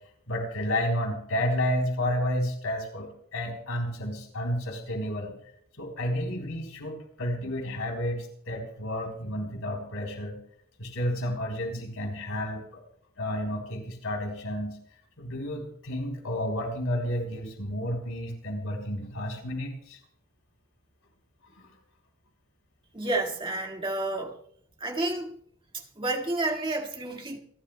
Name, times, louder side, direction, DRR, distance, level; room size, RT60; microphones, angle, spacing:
voice 1, 0.3-5.4 5.8-10.4 10.8-12.8 13.2-14.8 15.2-20.0 21.6-21.7, equal, 75° left, 3.7 m, -31 dB
voice 2, 22.9-24.3 24.8-25.3 25.7-27.4, right 2 dB, 25° right, 2.0 m, -30 dB
28.0 x 12.0 x 2.3 m
head